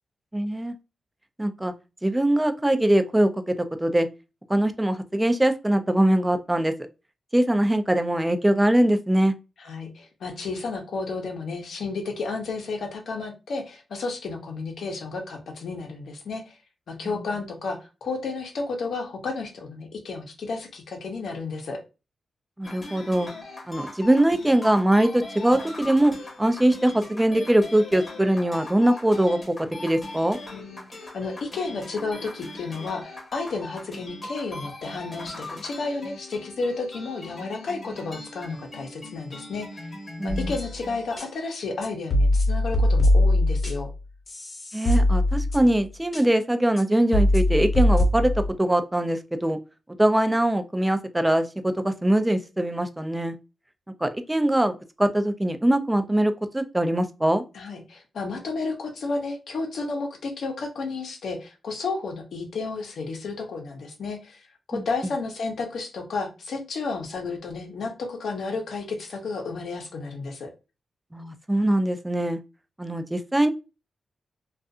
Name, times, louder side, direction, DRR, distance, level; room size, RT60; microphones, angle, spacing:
voice 1, 0.3-0.7 1.4-1.7 2.0-4.1 4.5-6.7 7.3-9.3 17.0-17.3 22.6-23.3 23.7-29.6 29.8-30.4 40.2-40.5 44.7-48.3 48.6-49.6 50.0-53.4 54.0-57.4 64.7-64.8 71.1-72.4 72.8-73.5, right 1 dB, 10° right, 9 dB, 0.4 m, -22 dB
voice 2, 9.6-16.6 16.9-21.8 30.5-40.0 40.2-43.9 57.5-70.5, left 3 dB, 80° left, 2 dB, 0.7 m, -32 dB
sound 1, 22.6-41.3, left 2 dB, 35° left, 1.0 m, -40 dB
sound 2, 40.3-40.8 41.2-41.3 41.8-44.0 44.3-45.8 46.1-46.2 46.8-46.9 47.1-48.5, left 1 dB, 60° left, 1.1 m, -22 dB
2.6 x 2.4 x 2.3 m, 0.29 s
cardioid pair, 80°, 0 cm